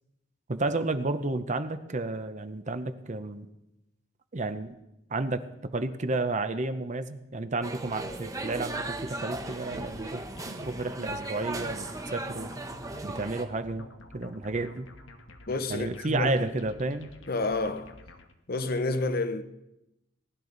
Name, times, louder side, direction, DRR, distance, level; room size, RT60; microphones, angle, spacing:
voice 1, 0.5-3.5 4.3-4.8 5.1-11.9 12.1-12.5 13.0-13.9 14.1-14.9 15.7-17.1, right 2 dB, 40° right, 0.8 m, -31 dB
sound 1, 7.6-13.4, right 2 dB, 20° right, 1.0 m, -37 dB
sound 2, 8.0-18.3, left 2 dB, 80° left, 1.3 m, -50 dB
voice 2, 15.5-16.5 17.3-18.0 18.5-19.4, left 2 dB, 50° left, 0.9 m, -29 dB
19.0 x 12.0 x 4.0 m
head